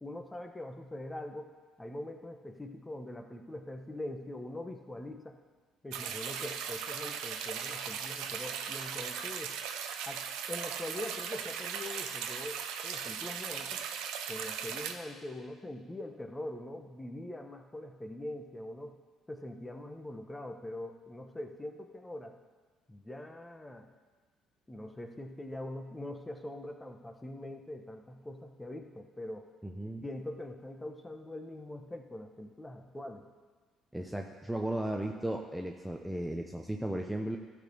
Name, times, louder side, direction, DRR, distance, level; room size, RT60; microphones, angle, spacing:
voice 1, 0.0-1.5 1.8-5.4 5.8-9.5 10.1-13.8 14.3-19.0 19.3-22.4 22.9-23.9 24.7-29.5 30.0-33.3, left 1 dB, 15° left, 5 dB, 1.1 m, -43 dB
sound 1, 5.9-14.9, right 8 dB, 75° right, 0.7 m, -38 dB
voice 2, 29.6-30.0 33.9-37.4, right 1 dB, 5° right, 2 dB, 0.8 m, -35 dB
13.0 x 4.3 x 6.8 m, 1.4 s
supercardioid pair, 65°, 0 cm